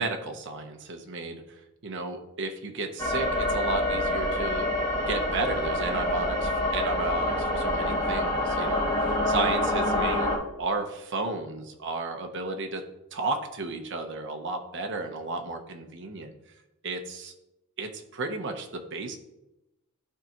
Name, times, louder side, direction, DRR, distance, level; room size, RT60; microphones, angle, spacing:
voice 1, 0.0-4.7 5.1-12.9 13.1-16.3 16.8-17.3 17.8-19.2, right 3 dB, 55° right, 4 dB, 0.8 m, -33 dB
sound 1, 3.0-10.4, left 1 dB, 15° left, 1.6 m, -26 dB
12.0 x 4.6 x 2.9 m, 0.92 s
head